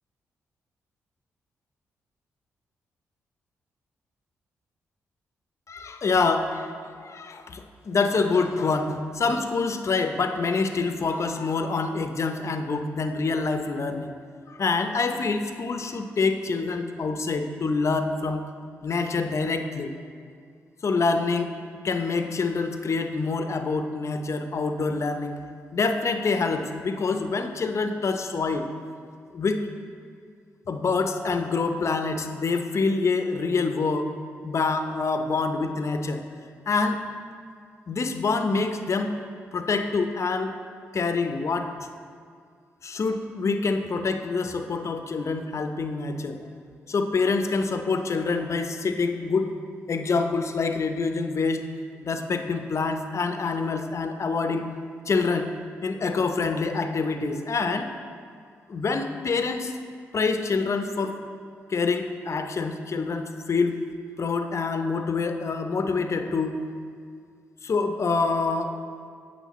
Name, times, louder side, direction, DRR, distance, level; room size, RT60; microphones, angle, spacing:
voice 1, 5.7-14.1 14.5-18.4 18.8-19.9 20.8-21.5 21.8-25.4 25.7-28.7 29.3-29.6 30.7-34.1 34.4-36.2 36.7-37.0 37.9-39.2 39.5-40.5 40.9-41.7 42.8-46.4 46.9-49.5 49.9-51.6 52.0-54.7 55.1-55.5 55.8-57.9 58.7-59.7 60.1-61.2 61.7-63.8 64.2-66.6 67.6-68.8, left 4 dB, 50° left, 7 dB, 0.6 m, -26 dB
9.1 x 6.4 x 3.1 m, 2.2 s
hypercardioid pair, 45°, 6 cm